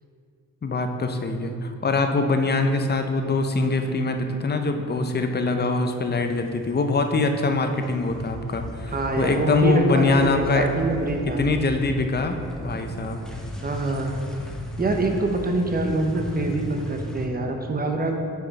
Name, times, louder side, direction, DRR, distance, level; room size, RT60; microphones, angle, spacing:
voice 1, 0.6-10.7 11.4-13.2, left 3 dB, 30° left, 6 dB, 0.6 m, -23 dB
sound 1, 6.2-6.9 7.2-17.3, equal, ahead, 0.8 m, -37 dB
voice 2, 8.9-11.5 13.6-14.2 14.8-18.1, right 2 dB, 30° right, 3 dB, 0.8 m, -25 dB
6.6 x 5.0 x 4.0 m, 2.4 s
cardioid pair, 80°, 33 cm